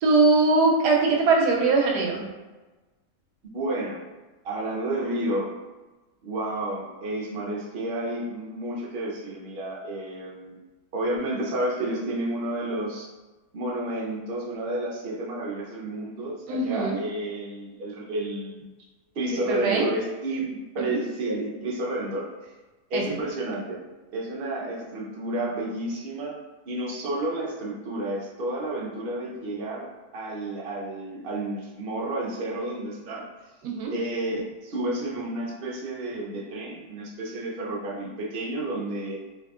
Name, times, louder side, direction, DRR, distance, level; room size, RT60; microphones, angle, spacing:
voice 1, 0.0-2.2 16.5-17.0 19.5-19.9 20.9-21.0 22.9-23.2 33.6-33.9, right 3 dB, 85° right, 0 dB, 1.2 m, -21 dB
voice 2, 3.5-4.0 4.4-5.5 6.2-10.6 10.9-13.1 13.5-18.7 19.1-22.5 22.9-23.7 24.1-26.4 26.7-29.9 30.1-33.2 33.9-34.3 34.6-39.2, right 1 dB, 55° right, -3 dB, 0.7 m, -31 dB
3.6 x 2.6 x 2.4 m, 1.2 s
omnidirectional pair, 1.7 m